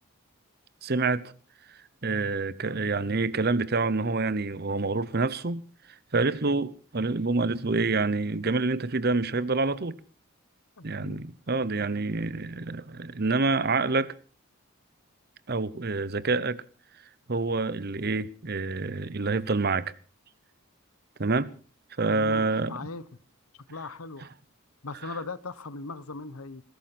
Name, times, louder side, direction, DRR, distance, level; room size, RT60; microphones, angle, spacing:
voice 1, 0.8-1.3 2.0-5.6 6.1-10.0 10.8-14.1 15.5-16.6 17.3-19.9 21.2-21.5 22.0-22.9 25.0-25.1, right 3 dB, 45° right, 0.9 m, -27 dB
voice 2, 10.8-11.2 22.1-23.1 23.7-24.3 24.8-26.6, left 3 dB, 90° left, 1.1 m, -39 dB
20.0 x 16.5 x 4.3 m
head